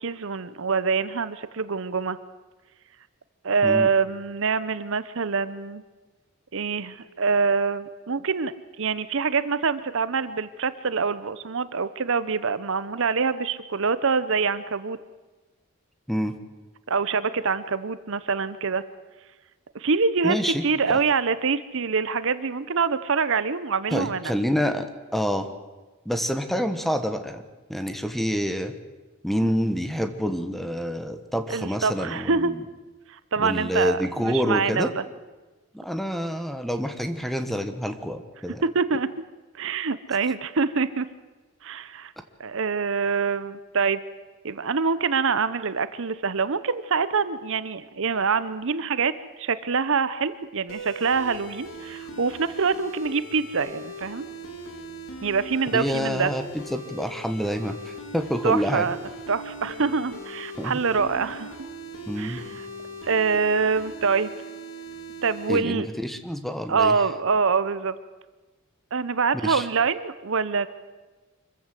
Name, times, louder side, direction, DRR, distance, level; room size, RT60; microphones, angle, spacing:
voice 1, 0.0-2.2 3.4-5.8 6.5-15.0 16.9-18.8 19.7-20.4 20.6-24.3 31.5-32.5 33.1-35.0 38.7-39.1 39.6-41.1 41.6-42.1 42.4-44.0 44.4-49.1 49.4-54.3 55.2-56.3 58.4-59.0 59.3-61.5 62.2-62.4 63.0-64.3 65.2-65.9 66.7-67.9 68.9-70.7, right 5 dB, 65° right, 14 dB, 0.8 m, -25 dB
voice 2, 20.2-20.6 20.9-21.0 23.9-25.5 26.0-27.4 27.7-28.7 29.2-32.6 33.4-34.9 35.7-38.6 55.7-56.4 56.7-58.9 60.6-60.8 62.1-62.4 65.5-67.0 69.4-69.7, equal, ahead, 8 dB, 1.3 m, -27 dB
sound 1, 50.7-65.6, right 1 dB, 65° left, 3.3 m, -40 dB
25.0 x 15.0 x 7.7 m, 1.2 s
head